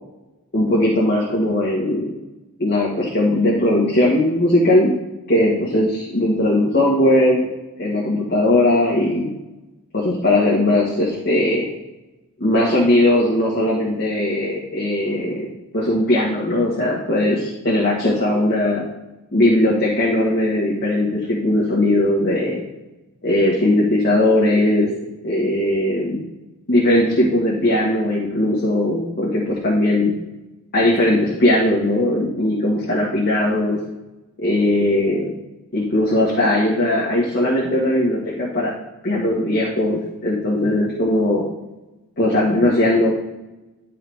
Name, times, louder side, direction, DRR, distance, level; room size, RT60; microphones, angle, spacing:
voice 1, 0.5-2.1 2.6-4.9 5.3-7.4 7.8-9.3 9.9-11.7 12.4-15.5 15.7-18.8 19.3-22.6 23.2-24.9 25.2-26.2 26.7-30.1 30.7-33.8 34.4-35.3 35.7-38.7 39.0-41.4 42.2-43.1, left 1 dB, 45° left, -5 dB, 1.5 m, -19 dB
11.0 x 4.7 x 3.5 m, 1.1 s
head